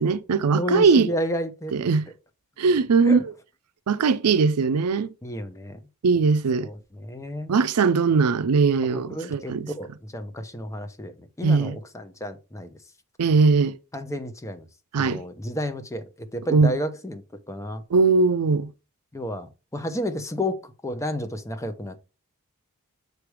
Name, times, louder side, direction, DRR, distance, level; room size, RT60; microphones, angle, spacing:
voice 1, 0.0-1.1 1.8-2.1 2.6-3.2 3.9-5.1 6.0-6.7 7.5-9.7 11.4-11.8 13.2-13.8 14.9-15.2 16.5-16.7 17.9-18.7, right 4 dB, 85° right, 0.5 m, -20 dB
voice 2, 0.5-1.7 3.0-3.2 5.2-5.8 6.6-7.5 8.8-12.8 13.9-14.7 15.0-17.8 19.1-22.0, left 1 dB, 15° left, 0.8 m, -31 dB
6.6 x 3.3 x 4.7 m
head